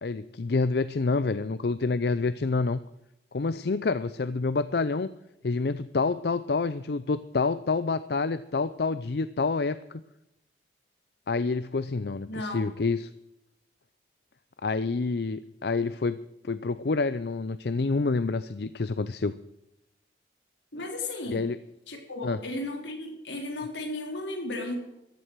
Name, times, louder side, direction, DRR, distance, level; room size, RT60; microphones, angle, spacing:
voice 1, 0.0-2.8 3.3-5.1 5.4-10.0 11.3-13.1 14.6-16.2 16.4-19.3 21.3-21.6 22.2-22.4, left 3 dB, 60° left, 14 dB, 0.5 m, -28 dB
voice 2, 12.3-12.6 20.7-21.5 21.9-24.7, left 2 dB, 80° left, 3 dB, 3.6 m, -34 dB
14.5 x 11.0 x 6.1 m, 0.86 s
head